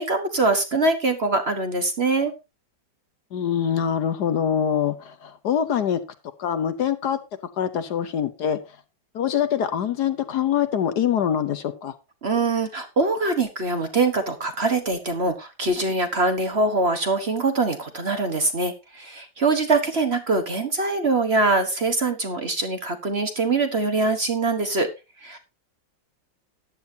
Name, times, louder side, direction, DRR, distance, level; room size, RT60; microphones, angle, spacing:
voice 1, 0.0-2.3 12.2-24.9 25.2-25.4, right 3 dB, 40° right, 7 dB, 1.3 m, -23 dB
voice 2, 3.3-6.0 6.4-7.2 7.6-8.6 9.1-11.9, left 8 dB, 65° left, 11 dB, 1.3 m, -24 dB
14.0 x 10.0 x 2.7 m, 0.26 s
omnidirectional pair, 2.1 m